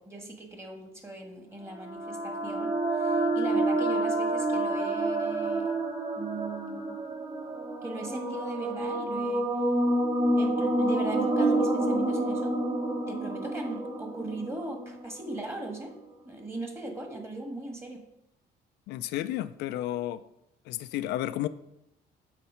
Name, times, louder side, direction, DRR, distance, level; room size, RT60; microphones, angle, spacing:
voice 1, 0.0-5.8 6.1-7.0 7.8-9.5 10.4-12.5 13.1-15.9 16.2-18.0, right 2 dB, 15° right, 1.5 m, -39 dB
sound 1, 1.7-15.3, right 2 dB, 50° right, 1.9 m, -28 dB
voice 2, 18.9-20.2 20.7-21.5, left 14 dB, 80° left, 0.4 m, -32 dB
7.4 x 4.1 x 5.6 m
cardioid pair, 110°, 17 cm